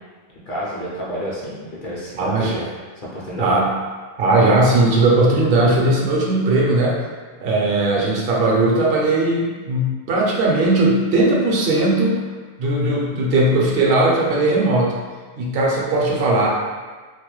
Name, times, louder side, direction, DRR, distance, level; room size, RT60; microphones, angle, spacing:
voice 1, 0.5-2.7 3.0-3.6, equal, 60° left, -6 dB, 0.7 m, -29 dB
voice 2, 2.1-2.5 3.4-3.7 4.2-7.0 7.4-12.2 12.6-15.0 15.4-16.5, right 2 dB, 70° right, -3 dB, 0.7 m, -18 dB
2.3 x 2.1 x 2.9 m, 1.4 s
omnidirectional pair, 1.1 m